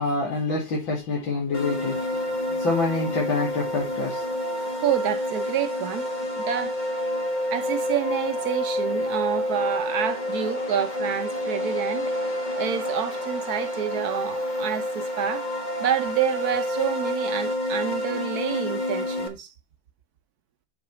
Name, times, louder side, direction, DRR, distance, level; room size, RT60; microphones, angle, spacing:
voice 1, 0.0-2.2 2.5-4.2, left 3 dB, 70° left, 2.7 m, -27 dB
sound 1, 1.5-19.3, left 1 dB, 25° left, 1.3 m, -28 dB
voice 2, 4.8-6.0 6.4-6.8 7.5-12.1 12.5-15.5 15.8-19.5, right 9 dB, 60° right, 1.1 m, -28 dB
5.9 x 5.7 x 5.8 m
omnidirectional pair, 2.2 m